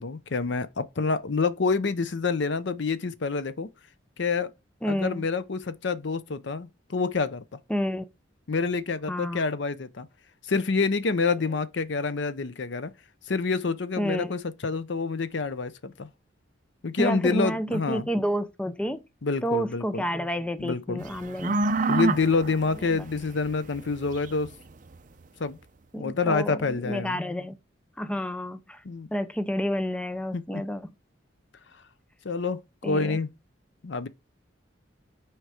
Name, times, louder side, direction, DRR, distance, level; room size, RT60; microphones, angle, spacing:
voice 1, 0.0-3.7 4.2-4.5 4.8-7.4 8.5-10.1 10.5-12.9 13.3-16.1 16.8-18.1 19.2-20.0 20.6-21.0 21.9-24.5 25.4-25.6 25.9-27.2 28.8-29.1 30.3-30.6 32.2-33.3 33.8-34.1, left 4 dB, 70° left, 0.6 m, -27 dB
voice 2, 4.8-5.2 7.7-8.0 9.1-9.4 14.0-14.4 17.0-19.0 19.4-21.6 22.9-23.1 25.9-27.6 28.0-28.8 29.1-30.8 32.8-33.2, equal, 5° left, 0.5 m, -29 dB
sound 1, 21.0-25.0, right 3 dB, 45° right, 0.6 m, -28 dB
6.5 x 4.6 x 4.8 m
head